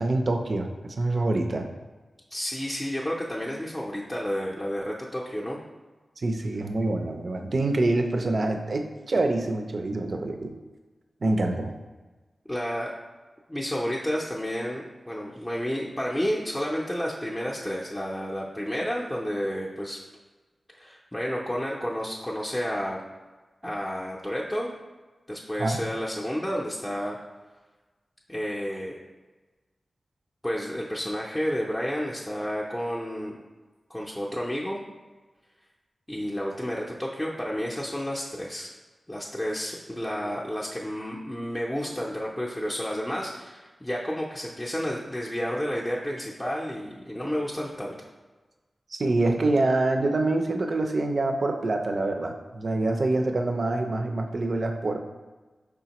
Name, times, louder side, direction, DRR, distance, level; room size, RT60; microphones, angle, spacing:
voice 1, 0.0-1.7 6.2-10.6 11.2-11.7 25.6-25.8 48.9-55.0, right 2 dB, 65° right, 4 dB, 0.5 m, -26 dB
voice 2, 2.3-5.6 12.5-12.9 13.5-20.0 20.7-23.0 23.6-24.7 25.3-27.2 28.3-29.0 30.4-33.3 33.9-34.8 36.1-38.7 39.1-48.0, equal, 15° left, -4 dB, 0.5 m, -31 dB
4.9 x 3.5 x 2.9 m, 1.2 s
cardioid pair, 50°, 0 cm